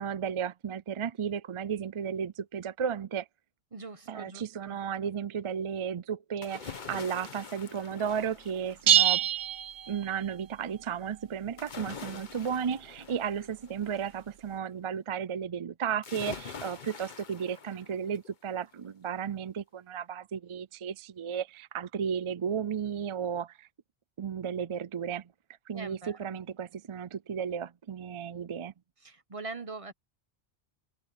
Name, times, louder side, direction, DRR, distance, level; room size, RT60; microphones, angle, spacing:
voice 1, 0.0-3.3 4.1-9.3 9.9-23.7 24.2-25.3 25.7-28.7, right 7 dB, 50° right, 0.3 m, -34 dB
voice 2, 3.7-4.8 12.1-12.2 25.7-26.2 29.0-29.9, right 3 dB, 30° right, 1.2 m, -42 dB
sound 1, 6.4-9.2 11.6-14.2 16.0-18.3 18.7-18.8, left 6 dB, 45° left, 1.1 m, -45 dB
sound 2, 8.9-10.4, right 10 dB, 75° right, 1.0 m, -25 dB
omnidirectional pair, 1.1 m